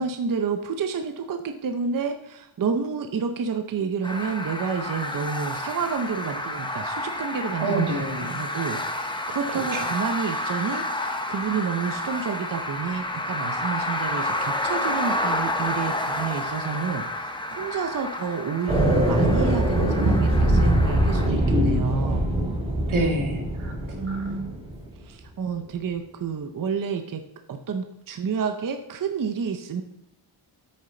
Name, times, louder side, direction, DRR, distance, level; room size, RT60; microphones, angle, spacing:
voice 1, 0.0-7.9 8.3-22.3 23.9-24.6 25.0-27.2 27.5-29.8, right 6 dB, 45° right, 6 dB, 0.7 m, -29 dB
sound 1, 4.0-21.3, left 1 dB, 10° left, 0.6 m, -30 dB
voice 2, 7.6-8.4 9.5-9.9 22.9-23.8, right 2 dB, 90° right, 1 dB, 2.0 m, -27 dB
sound 2, 18.7-24.8, right 1 dB, 10° right, 2.0 m, -22 dB
8.7 x 6.6 x 3.8 m, 0.86 s
wide cardioid pair, 160°, 47 cm